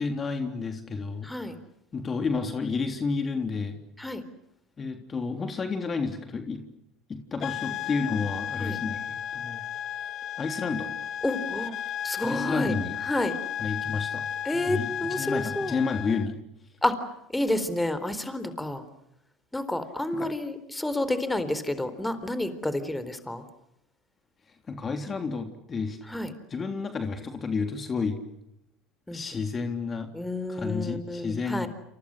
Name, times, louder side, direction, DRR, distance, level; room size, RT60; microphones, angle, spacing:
voice 1, 0.0-1.3 1.9-3.8 4.8-6.7 7.1-9.7 10.4-10.9 12.2-13.0 13.6-14.2 14.5-16.4 20.1-20.3 24.5-26.0 26.5-28.2 29.1-30.1 30.5-31.7, left 4 dB, 30° left, 6 dB, 3.4 m, -31 dB
voice 2, 1.2-1.6 4.0-4.2 8.6-8.8 11.2-12.7 13.0-13.3 14.4-15.7 16.8-17.1 17.3-18.8 19.5-23.4 26.1-26.3 29.1-29.2 30.1-31.7, left 1 dB, 10° left, 12 dB, 4.0 m, -30 dB
sound 1, 7.4-16.3, left 10 dB, 50° left, 1.0 m, -34 dB
29.0 x 29.0 x 6.5 m, 0.80 s
hypercardioid pair, 75°, 0 cm